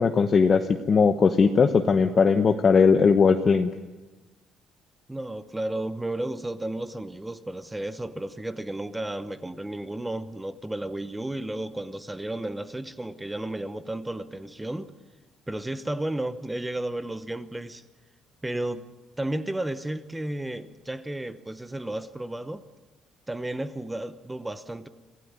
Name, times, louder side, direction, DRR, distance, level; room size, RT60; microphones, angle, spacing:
voice 1, 0.0-3.7, left 5 dB, 30° left, 6 dB, 0.9 m, -19 dB
voice 2, 5.1-14.9 15.5-17.8 18.4-18.8 19.2-22.6 23.3-24.9, right 1 dB, 5° right, 12 dB, 0.9 m, -33 dB
26.0 x 16.5 x 9.5 m, 1.2 s
cardioid pair, 170°, 0 cm